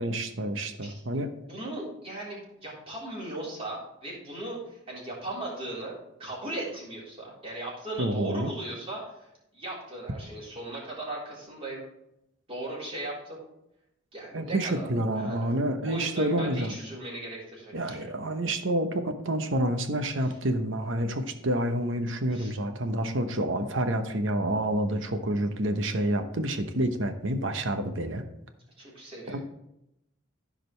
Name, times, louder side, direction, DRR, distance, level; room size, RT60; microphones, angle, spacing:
voice 1, 0.0-1.3 8.0-8.5 14.3-16.7 17.7-28.2 29.3-29.4, right 1 dB, 70° right, 7 dB, 0.9 m, -28 dB
voice 2, 0.8-11.8 12.5-13.4 14.1-15.6 15.8-18.1 20.1-20.3 22.3-22.5 28.8-29.4, right 1 dB, 30° right, -6 dB, 3.8 m, -38 dB
15.0 x 5.0 x 3.3 m, 0.84 s
head